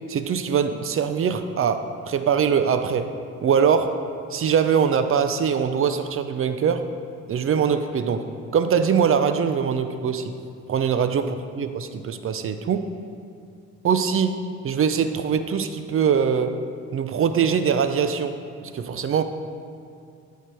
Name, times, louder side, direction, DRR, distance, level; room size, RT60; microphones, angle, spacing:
voice 1, 0.1-3.1 3.4-4.0 4.3-6.9 7.3-10.3 10.7-12.9 13.8-16.6 16.9-18.4 18.7-19.2, right 7 dB, 45° right, 9 dB, 0.5 m, -22 dB
13.0 x 4.7 x 4.5 m, 2.4 s
cardioid pair, 90°, 30 cm